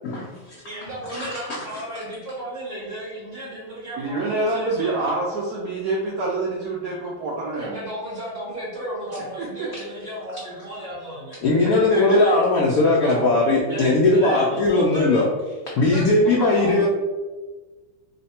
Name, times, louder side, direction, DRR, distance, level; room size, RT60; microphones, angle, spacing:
voice 1, 0.0-2.0 9.1-9.2 9.7-9.9 10.3-10.4 11.4-16.9, left 2 dB, 80° left, -4 dB, 0.7 m, -20 dB
voice 2, 0.6-5.0 7.6-11.4 11.9-12.3 13.1-13.2 13.7-13.9 14.1-14.4 14.7-15.1 15.9-16.0 16.4-16.9, equal, 30° right, -6 dB, 0.9 m, -34 dB
voice 3, 4.0-7.8 9.2-9.7 11.9-12.2 12.8-12.9 13.7-13.9 14.3-14.4 16.7-16.8, right 2 dB, 75° right, -4 dB, 0.9 m, -27 dB
3.2 x 2.1 x 4.1 m, 1.3 s
omnidirectional pair, 2.2 m